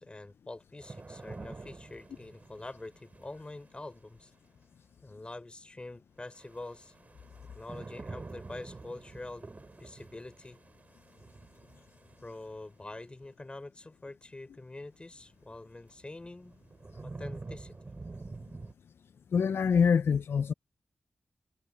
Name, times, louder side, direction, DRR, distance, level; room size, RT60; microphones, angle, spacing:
voice 1, 0.0-4.3 5.0-6.9 7.5-10.6 12.2-16.6 17.0-17.7, left 2 dB, 25° left, 4.8 m, -45 dB
sound 1, 0.8-3.9 6.3-12.6 15.2-15.3 15.9-18.7, right 3 dB, 40° right, 4.7 m, -47 dB
voice 2, 19.3-20.5, left 6 dB, 90° left, 0.4 m, -25 dB
wide cardioid pair, 90°, 4 cm